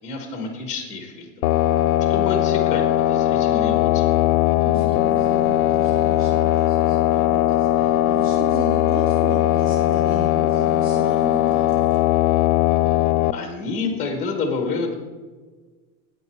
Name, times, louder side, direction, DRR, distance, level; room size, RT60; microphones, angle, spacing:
voice 1, 0.0-1.5 2.1-4.1 13.3-15.0, left 4 dB, 15° left, 4 dB, 1.3 m, -28 dB
sound 1, 1.4-13.3, left 13 dB, 80° left, 0.5 m, -19 dB
voice 2, 4.6-11.8, right 1 dB, 40° right, -3 dB, 2.2 m, -35 dB
9.4 x 8.8 x 4.6 m, 1.4 s
supercardioid pair, 160°, 44 cm